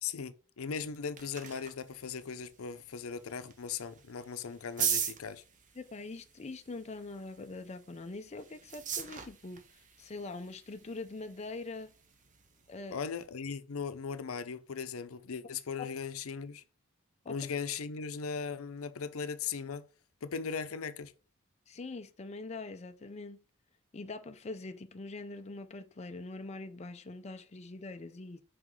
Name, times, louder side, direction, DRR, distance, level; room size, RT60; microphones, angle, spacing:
voice 1, 0.0-5.4 12.9-16.6 17.3-19.9 20.2-21.1, left 6 dB, 85° left, 0.6 m, -38 dB
sound 1, 0.7-13.3, right 8 dB, 35° right, 0.9 m, -42 dB
voice 2, 5.8-11.9 12.7-13.0 17.2-17.4 21.7-23.4 23.9-28.4, left 3 dB, 30° left, 0.4 m, -43 dB
6.0 x 5.0 x 3.1 m
head